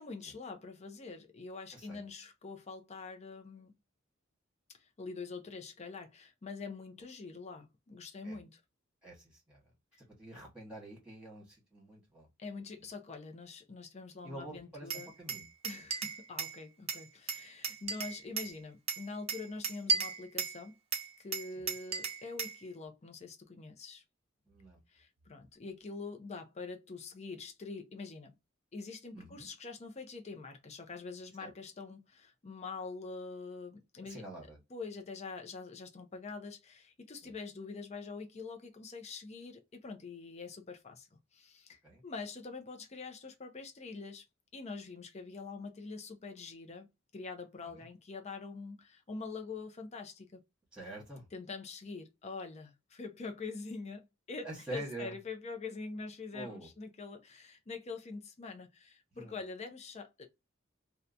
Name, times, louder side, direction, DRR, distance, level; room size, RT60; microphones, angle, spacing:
voice 1, 0.0-3.8 4.7-8.6 12.4-15.1 15.6-20.8 21.2-24.0 24.9-28.4 28.7-34.2 34.7-44.2 44.5-50.4 51.3-60.3, left 4 dB, 35° left, 0.5 m, -45 dB
voice 2, 1.7-2.1 8.2-8.4 9.0-9.6 10.2-12.3 14.2-15.5 21.6-21.7 24.5-24.8 29.1-29.5 31.4-31.5 34.1-34.6 37.2-37.3 41.8-42.0 47.6-47.8 50.7-51.2 54.4-55.2 56.3-56.7 59.1-59.4, right 2 dB, 5° right, 1.3 m, -46 dB
Glass, 14.9-16.6 16.9-18.5 18.9-20.6 20.9-22.6, right 5 dB, 30° right, 0.6 m, -35 dB
2.8 x 2.2 x 2.5 m
head